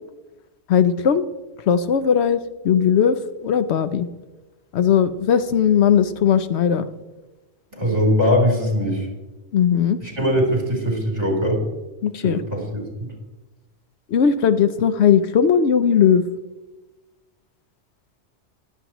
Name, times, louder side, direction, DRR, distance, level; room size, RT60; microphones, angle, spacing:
voice 1, 0.7-1.2 1.7-3.2 3.4-4.1 4.7-6.9 9.5-10.0 12.0-12.4 14.1-16.2, left 8 dB, 75° left, 10 dB, 0.9 m, -18 dB
voice 2, 7.7-9.1 10.0-11.6 12.2-12.8, equal, 35° right, -1 dB, 3.6 m, -21 dB
21.5 x 7.9 x 3.0 m, 1.1 s
omnidirectional pair, 1.1 m